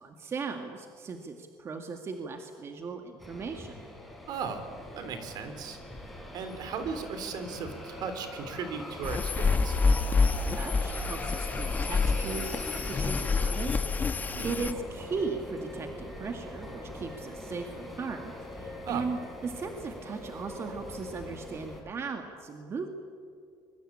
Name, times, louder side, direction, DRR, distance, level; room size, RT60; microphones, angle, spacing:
voice 1, 0.0-3.7 10.5-13.8 14.4-22.9, right 4 dB, 35° right, 5 dB, 2.1 m, -37 dB
sound 1, 3.2-21.8, left 1 dB, ahead, 5.7 m, -42 dB
voice 2, 4.3-5.8 6.3-10.0 14.3-14.6 18.8-19.1, right 5 dB, 60° right, 9 dB, 3.7 m, -37 dB
sound 2, 9.0-14.7, left 4 dB, 20° left, 1.1 m, -27 dB
25.0 x 23.5 x 8.8 m, 2.3 s
cardioid pair, 135°, 8 cm